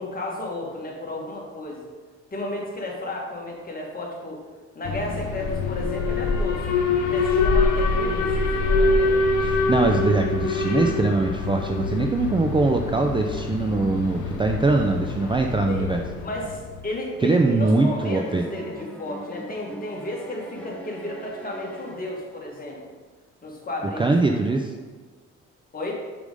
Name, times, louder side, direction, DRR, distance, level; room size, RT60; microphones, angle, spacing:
voice 1, 0.0-1.9 2.3-4.4 4.8-6.7 7.0-9.2 15.7-15.9 16.2-22.8 23.4-24.4 25.7-25.9, left 1 dB, 30° left, -2 dB, 1.9 m, -33 dB
Alarm, 4.8-16.9, left 3 dB, 75° left, 0.9 m, -25 dB
voice 2, 9.4-16.0 17.2-18.4 24.0-24.7, right 3 dB, 15° right, 3 dB, 0.4 m, -22 dB
sound 1, 17.6-22.5, right 1 dB, 5° left, 0.9 m, -41 dB
5.0 x 4.9 x 5.3 m, 1.4 s
cardioid pair, 90°, 30 cm